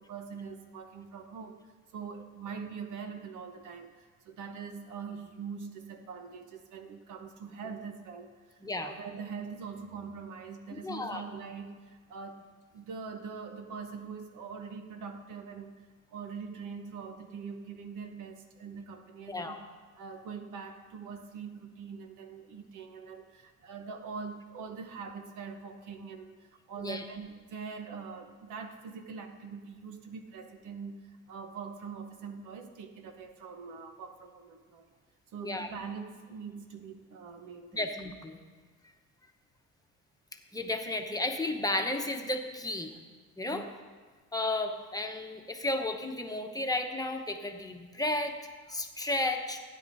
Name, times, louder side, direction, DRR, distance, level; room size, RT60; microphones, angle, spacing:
voice 1, 0.0-12.5 12.7-19.6 20.0-34.9 35.3-37.9 43.5-43.7, right 5 dB, 90° right, 6 dB, 1.0 m, -43 dB
voice 2, 10.7-11.2 19.3-19.6 26.8-27.0 35.4-35.7 37.7-38.4 40.5-42.9 43.4-43.7 44.3-48.4 48.7-49.6, left 2 dB, 10° left, 4 dB, 1.0 m, -33 dB
16.0 x 9.7 x 2.7 m, 1.5 s
cardioid pair, 90°, 30 cm